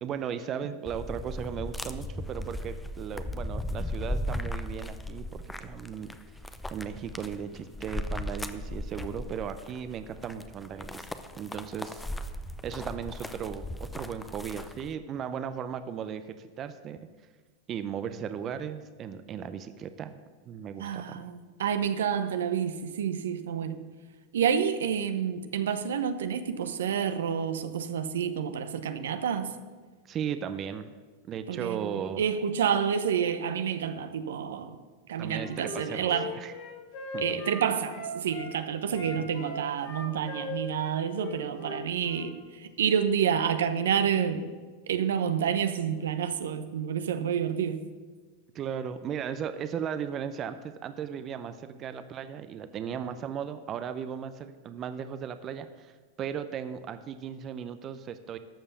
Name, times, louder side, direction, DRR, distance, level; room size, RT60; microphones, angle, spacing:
voice 1, 0.0-6.2 6.7-12.3 12.6-17.0 17.7-20.2 20.5-21.2 30.0-30.9 31.3-32.2 35.2-36.5 37.1-37.4 39.1-39.2 48.5-55.9 56.2-58.4, right 8 dB, 35° right, 11 dB, 0.6 m, -36 dB
sound 1, 0.9-14.9, left 1 dB, 10° left, 0.7 m, -37 dB
voice 2, 20.8-23.9 24.3-29.5 31.5-34.8 35.1-36.3 37.2-44.5 44.9-47.8, right 8 dB, 80° right, 10 dB, 0.8 m, -29 dB
Wind instrument woodwind instrument, 35.2-38.5 38.9-42.3, left 3 dB, 60° left, 2.5 m, -39 dB
13.0 x 5.4 x 6.9 m, 1.4 s
hypercardioid pair, 100°, 0 cm